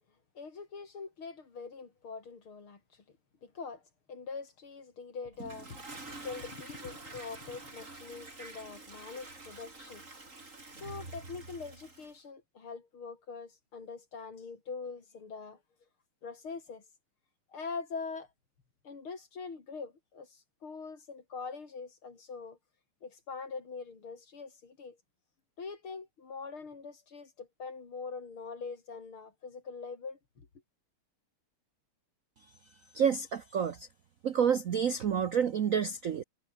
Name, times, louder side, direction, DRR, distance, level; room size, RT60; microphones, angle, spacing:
voice 1, 0.3-2.8 3.4-3.8 4.1-10.0 10.8-15.6 16.2-16.8 17.5-18.3 18.8-22.6 23.0-25.0 25.6-30.5, left 4 dB, 70° left, 4.4 m, -43 dB
Toilet flush, 5.3-12.2, right 2 dB, 35° right, 4.6 m, -47 dB
voice 2, 32.9-33.9 34.2-36.2, right 7 dB, 60° right, 0.9 m, -29 dB
omnidirectional pair, 2.4 m